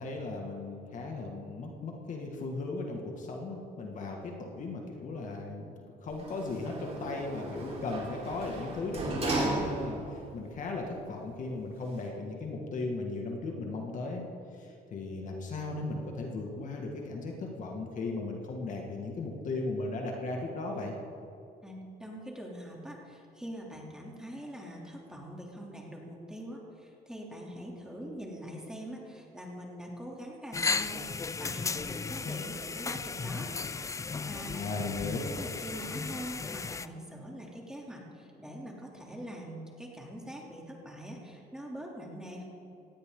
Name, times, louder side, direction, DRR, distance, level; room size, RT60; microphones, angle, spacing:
voice 1, 0.0-5.7 6.0-10.0 10.3-14.3 14.6-20.9 34.5-35.2, left 3 dB, 50° left, 1 dB, 2.1 m, -36 dB
Sliding door, 6.1-10.2 10.6-10.7, right 2 dB, 35° right, 4.1 m, -35 dB
voice 2, 21.6-34.7 35.1-42.4, equal, 5° right, -2 dB, 3.2 m, -44 dB
sound 1, 30.5-36.9, left 4 dB, 20° left, 0.4 m, -35 dB
18.5 x 15.5 x 3.9 m, 2.7 s
cardioid pair, 110°, 17 cm